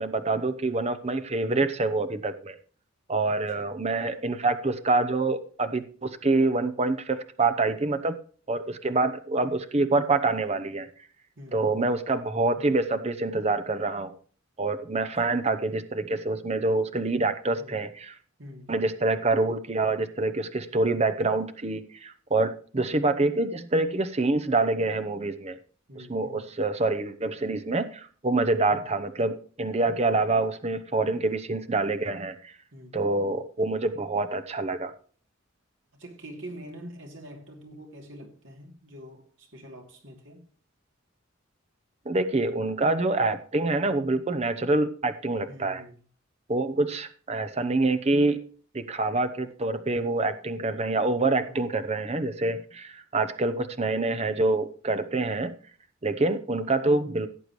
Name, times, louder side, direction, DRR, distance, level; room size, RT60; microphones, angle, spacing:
voice 1, 0.0-2.5 3.1-8.1 8.5-10.9 11.5-14.2 14.6-18.1 18.7-25.6 26.1-32.5 32.9-34.9 42.1-45.8 46.5-48.4 48.7-55.5 56.0-57.3, right 2 dB, 30° right, 0.7 m, -26 dB
voice 2, 3.2-3.7 11.4-11.9 14.9-15.0 17.6-17.8 18.4-18.7 25.9-26.4 32.7-33.1 35.9-40.4 45.5-46.0 51.4-51.6, equal, 65° right, 2.8 m, -45 dB
17.0 x 8.0 x 3.1 m
head